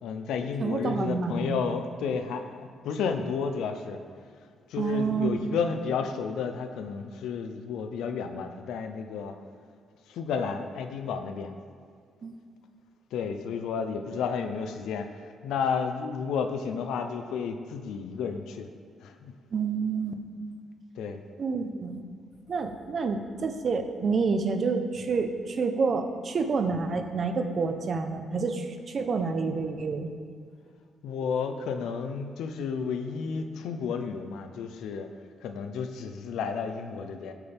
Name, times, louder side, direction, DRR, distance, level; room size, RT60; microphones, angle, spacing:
voice 1, 0.0-4.0 4.7-9.3 10.1-11.5 13.1-18.7 19.0-19.3 21.0-21.2 31.0-35.1 35.4-37.3, left 6 dB, 90° left, 7 dB, 0.7 m, -32 dB
voice 2, 0.6-1.6 4.8-5.7 12.2-12.4 19.5-20.1 21.4-22.0 22.5-30.1, right 4 dB, 40° right, 6 dB, 0.9 m, -28 dB
17.0 x 8.4 x 3.6 m, 2.1 s
cardioid pair, 135°, 0 cm